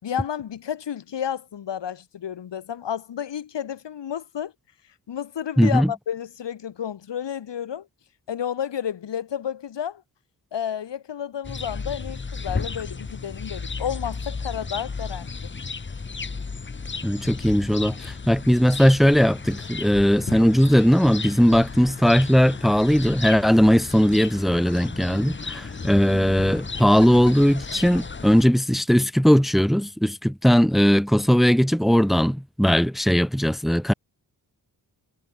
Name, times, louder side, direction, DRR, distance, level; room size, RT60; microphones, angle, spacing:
voice 1, 0.0-4.5 5.1-7.9 8.3-10.0 10.5-15.3, left 9 dB, 85° left, 3.9 m, -31 dB
voice 2, 5.6-5.9 17.0-33.9, equal, ahead, 1.3 m, -19 dB
sound 1, 11.4-28.5, left 4 dB, 25° left, 1.1 m, -34 dB
cardioid pair, 70°, 41 cm